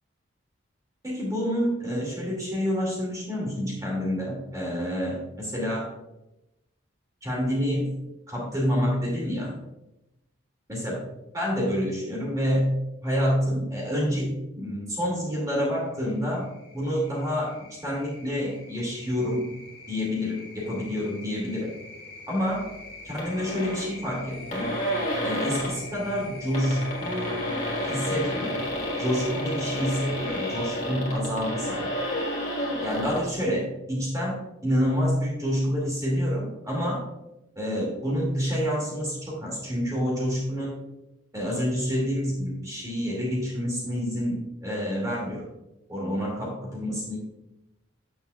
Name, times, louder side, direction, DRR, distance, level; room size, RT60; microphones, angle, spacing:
voice 1, 1.0-5.9 7.2-7.9 8.3-9.5 10.7-11.0 11.3-12.7 13.0-16.4 16.7-17.5 17.8-19.5 19.9-21.7 22.3-22.6 23.0-24.7 25.2-27.4 27.8-28.6 29.0-31.9 32.8-37.0 37.6-40.8 41.3-45.5 45.9-47.2, equal, 15° right, -5 dB, 2.2 m, -28 dB
sound 1, 15.8-30.7, left 3 dB, 55° left, 1.5 m, -45 dB
sound 2, 23.2-23.9 24.2-24.3 24.5-25.8 26.4-33.2, equal, 35° left, 1.6 m, -30 dB
sound 3, 24.3-29.8, left 1 dB, 90° left, 1.6 m, -43 dB
8.4 x 6.6 x 2.3 m, 0.92 s
head